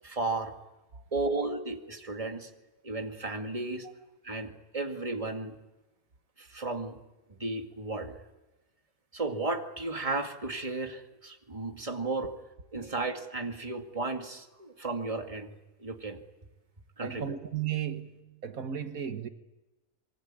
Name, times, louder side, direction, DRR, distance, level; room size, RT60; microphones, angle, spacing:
voice 1, 0.0-0.5 1.1-2.5 2.8-3.9 4.2-5.6 6.4-7.0 7.4-8.2 9.1-12.3 12.7-15.5 15.8-16.2 17.0-17.4, right 2 dB, 25° right, 2.3 m, -34 dB
voice 2, 17.0-19.3, right 9 dB, 85° right, 1.9 m, -35 dB
26.5 x 23.5 x 8.8 m
omnidirectional pair, 1.4 m